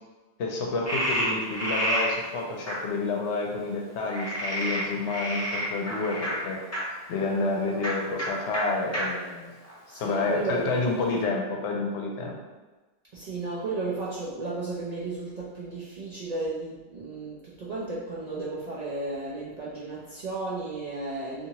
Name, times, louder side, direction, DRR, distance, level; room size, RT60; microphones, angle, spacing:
voice 1, 0.4-6.6 7.1-9.5 10.0-12.4, left 3 dB, 80° left, 0 dB, 0.9 m, -29 dB
Frog, 0.9-2.1 2.7-2.8 4.1-6.8 7.7-8.3 8.5-8.6 8.9-9.0 9.6-10.4, equal, 25° left, 0.3 m, -29 dB
voice 2, 9.9-10.7 13.1-21.5, right 3 dB, 55° right, -7 dB, 0.4 m, -34 dB
2.7 x 2.6 x 2.8 m, 1.2 s
omnidirectional pair, 1.2 m